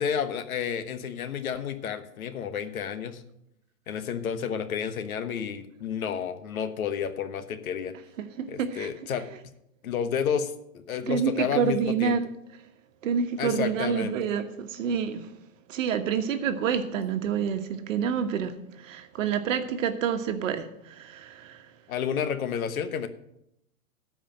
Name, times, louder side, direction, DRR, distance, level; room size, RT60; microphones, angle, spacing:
voice 1, 0.0-3.2 3.9-7.9 8.5-9.3 9.8-12.2 13.4-14.1 21.9-23.1, left 7 dB, 80° left, 1.3 m, -31 dB
voice 2, 8.4-8.9 11.1-12.3 13.0-15.3 15.7-21.7, right 7 dB, 65° right, 1.3 m, -28 dB
13.0 x 5.0 x 7.4 m
hypercardioid pair, 145°, 42 cm